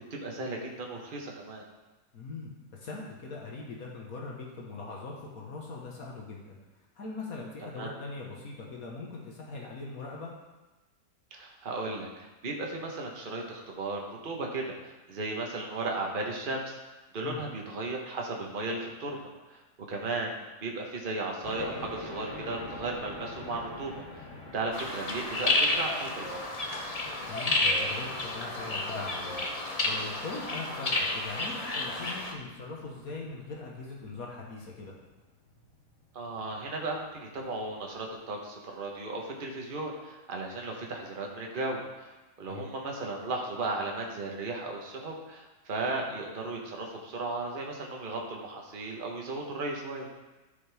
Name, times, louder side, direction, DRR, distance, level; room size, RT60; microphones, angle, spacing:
voice 1, 0.1-1.6 7.7-7.9 11.3-19.2 19.5-19.6 19.9-20.3 20.6-26.4 36.1-50.1, right 2 dB, 35° right, 0 dB, 1.3 m, -35 dB
voice 2, 2.1-6.6 7.0-10.3 17.2-17.4 27.3-29.4 29.9-34.9 42.4-42.7, left 3 dB, 65° left, -2 dB, 1.7 m, -41 dB
sound 1, 21.4-38.1, left 2 dB, 85° left, 2.6 m, -48 dB
sound 2, 24.7-32.3, left 2 dB, 30° left, 0.7 m, -31 dB
13.0 x 5.5 x 3.5 m, 1.1 s
omnidirectional pair, 1.7 m